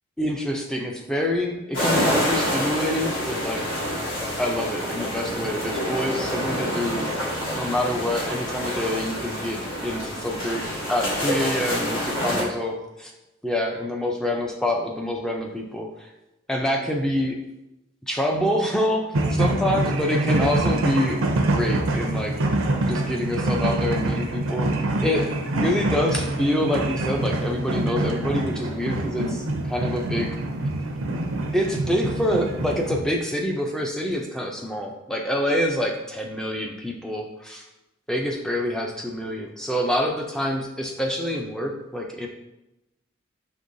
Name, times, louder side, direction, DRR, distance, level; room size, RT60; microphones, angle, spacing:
voice 1, 0.2-3.6 4.4-7.2 7.5-13.1 13.4-16.1 16.5-17.4 18.1-22.3 22.9-25.2 25.5-30.3 31.5-37.7 38.1-42.3, left 1 dB, 5° left, 1 dB, 0.4 m, -26 dB
sound 1, 1.7-12.4, equal, 75° left, 1.4 m, -27 dB
sound 2, 19.1-33.0, right 2 dB, 85° right, 0.5 m, -25 dB
5.3 x 3.0 x 2.6 m, 0.94 s
head